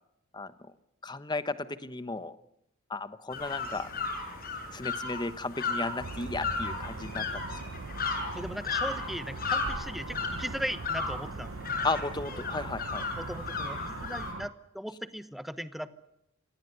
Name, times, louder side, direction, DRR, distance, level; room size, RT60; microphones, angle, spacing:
voice 1, 1.0-2.3 2.9-3.9 4.7-7.4 11.8-13.0, left 3 dB, 20° left, 12 dB, 1.1 m, -34 dB
sound 1, 3.3-14.3, left 4 dB, 45° left, 6.3 m, -35 dB
sound 2, 6.0-14.5, right 3 dB, 65° right, 0.8 m, -41 dB
voice 2, 8.4-11.7 12.3-12.4 13.2-16.0, equal, ahead, 11 dB, 1.1 m, -38 dB
26.5 x 19.0 x 8.2 m, 0.79 s
head